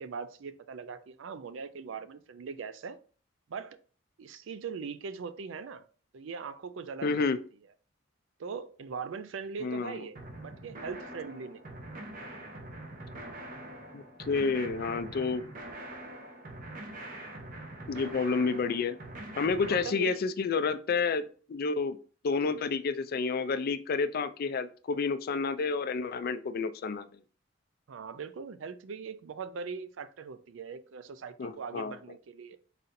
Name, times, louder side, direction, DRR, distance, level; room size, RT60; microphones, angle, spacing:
voice 1, 0.0-3.0 3.5-3.8 4.2-5.9 6.1-7.4 8.4-11.6 19.6-20.2 27.9-32.6, right 5 dB, 70° right, 0.4 m, -40 dB
voice 2, 7.0-7.4 9.6-10.0 13.9-15.4 17.9-19.0 19.4-21.2 21.5-22.0 22.2-27.1 31.4-31.9, left 4 dB, 50° left, 0.4 m, -30 dB
sound 1, 10.2-19.8, right 1 dB, 45° right, 0.9 m, -44 dB
4.1 x 4.0 x 2.6 m
head